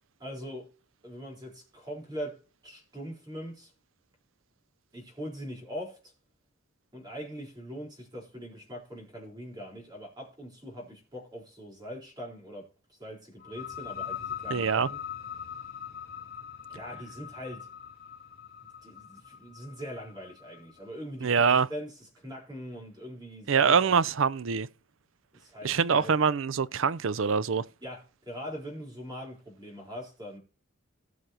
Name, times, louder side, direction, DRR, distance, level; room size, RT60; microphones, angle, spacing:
voice 1, 0.2-0.7 1.0-2.4 2.6-3.7 4.9-6.1 6.9-15.0 16.7-17.7 18.6-21.4 21.7-24.0 25.3-26.2 27.8-30.4, equal, 20° right, 4.1 m, -42 dB
sound 1, 13.4-20.9, left 9 dB, 45° left, 2.3 m, -42 dB
voice 2, 14.5-14.9 21.2-21.7 23.5-24.7 25.6-27.6, right 6 dB, 65° right, 0.5 m, -24 dB
18.0 x 6.4 x 2.9 m
head